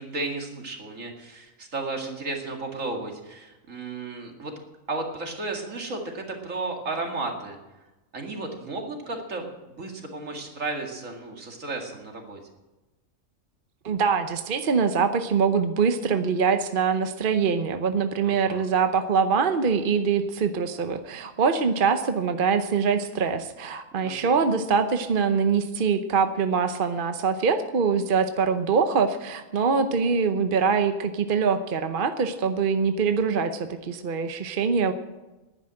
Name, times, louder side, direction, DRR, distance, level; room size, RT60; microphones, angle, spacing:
voice 1, 0.0-4.5 4.9-7.6 8.1-12.4 18.2-18.6 23.9-24.4, right 3 dB, 65° right, 2 dB, 2.5 m, -34 dB
voice 2, 13.8-34.9, right 5 dB, 45° right, 8 dB, 0.9 m, -24 dB
11.5 x 10.0 x 8.9 m, 1.1 s
omnidirectional pair, 1.4 m